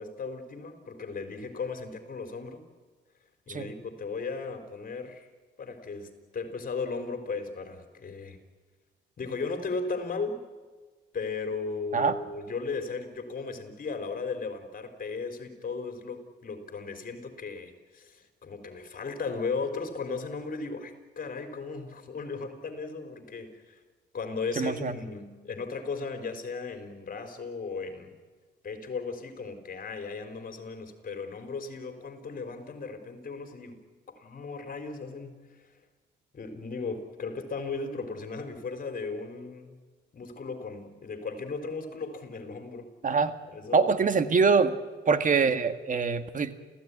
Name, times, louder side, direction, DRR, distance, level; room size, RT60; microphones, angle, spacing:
voice 1, 0.0-2.6 3.5-5.3 5.6-8.4 9.2-10.4 11.1-23.8 24.1-28.1 28.6-35.6 36.3-39.8 40.1-42.9 43.5-44.2, left 4 dB, 45° left, 7 dB, 4.2 m, -36 dB
voice 2, 24.6-24.9 43.0-43.3 43.7-44.7 45.1-46.5, right 5 dB, 40° right, 9 dB, 1.8 m, -24 dB
29.5 x 15.5 x 10.0 m, 1.4 s
cardioid pair, 90°, 20 cm